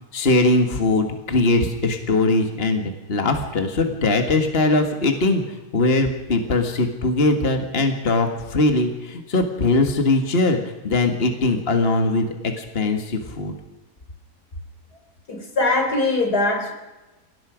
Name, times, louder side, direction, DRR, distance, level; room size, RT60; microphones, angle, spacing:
voice 1, 0.1-5.4 5.7-10.6 10.8-12.3 12.6-13.5, left 2 dB, 40° left, 5 dB, 2.1 m, -20 dB
voice 2, 15.3-16.7, left 2 dB, 90° left, 3 dB, 4.6 m, -21 dB
27.5 x 18.0 x 5.2 m, 1.1 s
omnidirectional pair, 1.6 m